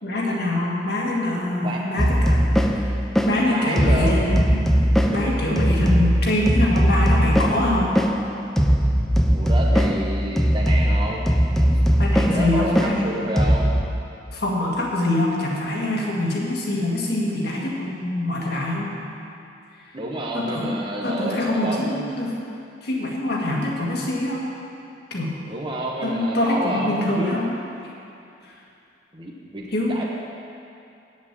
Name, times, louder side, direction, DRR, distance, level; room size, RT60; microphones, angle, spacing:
voice 1, 0.0-2.4 2.7-2.9 3.3-4.6 4.9-7.9 11.7-13.1 14.3-18.9 20.3-20.7 21.0-22.3 22.8-24.5 25.1-25.3 26.0-27.5 29.7-30.1, left 1 dB, 55° left, -3 dB, 2.0 m, -24 dB
sound 1, 2.0-13.8, equal, ahead, 0.5 m, -20 dB
voice 2, 3.5-4.2 9.3-11.3 12.3-13.7 19.9-22.1 25.5-27.4 29.1-30.1, right 1 dB, 25° right, -3 dB, 1.2 m, -29 dB
8.3 x 7.4 x 8.8 m, 2.7 s
head